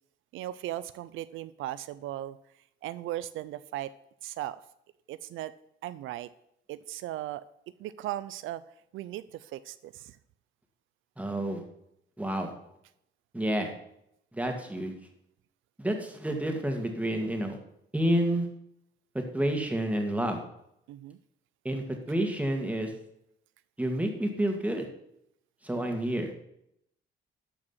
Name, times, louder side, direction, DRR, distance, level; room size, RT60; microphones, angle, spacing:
voice 1, 0.3-2.4 2.8-3.9 4.2-4.6 5.1-5.5 5.8-6.3 6.7-7.4 7.8-8.6 8.9-10.2 20.9-21.2, right 14 dB, 85° right, 15 dB, 0.4 m, -37 dB
voice 2, 11.2-11.6 12.2-12.5 13.3-13.7 14.3-14.9 15.8-17.6 17.9-18.5 19.1-20.4 21.6-22.9 23.8-24.9 25.6-26.3, right 1 dB, 5° right, 3 dB, 2.0 m, -29 dB
12.5 x 4.9 x 5.6 m, 0.77 s
cardioid pair, 90°, 20 cm